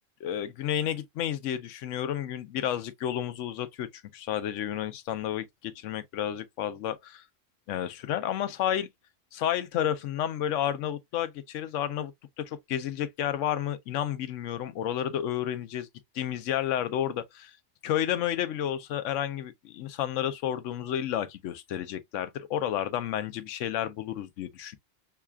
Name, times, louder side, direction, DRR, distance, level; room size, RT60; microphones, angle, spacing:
voice 1, 0.2-7.2 7.7-8.9 9.3-12.1 12.4-15.9 16.1-17.6 17.8-24.8, left 10 dB, 75° left, 0.9 m, -31 dB
5.7 x 2.3 x 2.2 m
omnidirectional pair, 1.3 m